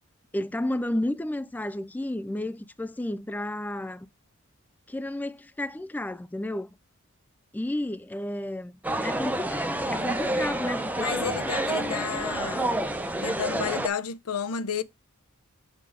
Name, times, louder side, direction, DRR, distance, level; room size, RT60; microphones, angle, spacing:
voice 1, 0.3-4.1 4.9-6.7 7.5-11.3, left 1 dB, 10° left, 0.3 m, -32 dB
sound 1, 8.8-13.9, right 1 dB, 5° right, 0.7 m, -28 dB
voice 2, 11.0-12.7 13.2-14.8, left 7 dB, 85° left, 0.6 m, -31 dB
7.5 x 3.4 x 4.9 m
head